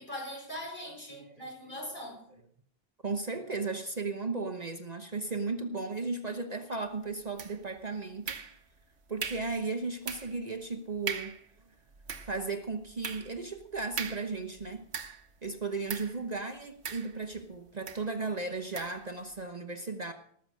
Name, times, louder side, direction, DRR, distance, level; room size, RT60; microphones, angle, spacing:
voice 1, 0.0-2.3, equal, 50° left, -1 dB, 5.8 m, -41 dB
voice 2, 1.1-1.5 3.0-8.4 9.1-11.3 12.2-14.8 15.4-20.1, right 3 dB, 40° right, 6 dB, 1.1 m, -35 dB
sound 1, 7.4-7.8 8.3-8.8 9.2-9.6 10.1-10.4 10.7-10.8 11.1-11.5 11.9-15.4 15.9-16.2 16.8-17.4 17.9-18.1 18.7-19.0, right 6 dB, 85° right, 1.4 m, -39 dB
19.0 x 7.1 x 6.3 m, 0.62 s
omnidirectional pair, 1.1 m